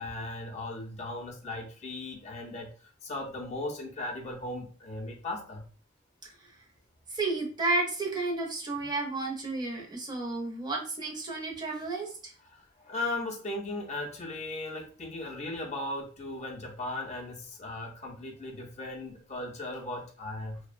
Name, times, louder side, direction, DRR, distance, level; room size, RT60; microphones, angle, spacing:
voice 1, 0.0-5.7 12.5-20.6, left 2 dB, 35° left, 1 dB, 0.5 m, -37 dB
voice 2, 7.1-12.3, right 2 dB, 20° right, 0 dB, 0.6 m, -32 dB
2.7 x 2.0 x 2.4 m, 0.40 s
head